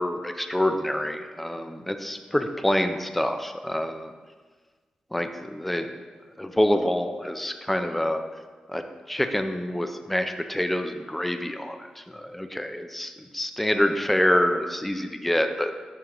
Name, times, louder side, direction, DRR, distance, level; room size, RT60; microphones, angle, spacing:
voice 1, 0.0-4.1 5.1-5.9 6.4-8.2 8.7-15.7, left 1 dB, 5° left, 6 dB, 0.4 m, -26 dB
11.0 x 3.6 x 2.9 m, 1.4 s
wide cardioid pair, 150°, 2 cm